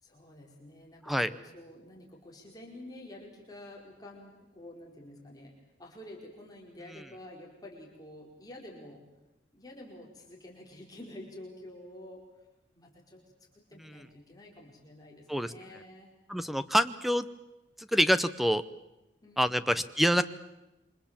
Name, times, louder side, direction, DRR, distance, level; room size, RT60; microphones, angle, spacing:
voice 1, 0.0-5.5 5.8-9.0 9.5-12.5 12.7-16.1 19.2-19.6, left 1 dB, 20° left, -1 dB, 4.6 m, -49 dB
voice 2, 16.3-17.3 17.8-18.6 19.4-20.2, equal, ahead, 12 dB, 0.8 m, -26 dB
28.0 x 24.5 x 7.4 m, 0.97 s
head